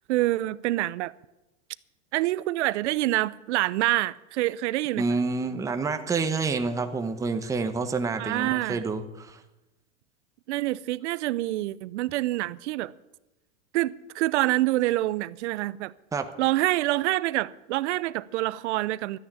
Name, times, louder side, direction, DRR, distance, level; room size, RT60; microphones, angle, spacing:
voice 1, 0.1-1.1 2.1-5.0 8.2-8.8 10.5-12.9 13.7-15.9 16.4-19.2, right 17 dB, 65° right, 0.7 m, -26 dB
voice 2, 5.0-9.4 16.1-16.3, right 4 dB, 10° right, 0.9 m, -28 dB
13.0 x 9.6 x 8.8 m
hypercardioid pair, 130°, 38 cm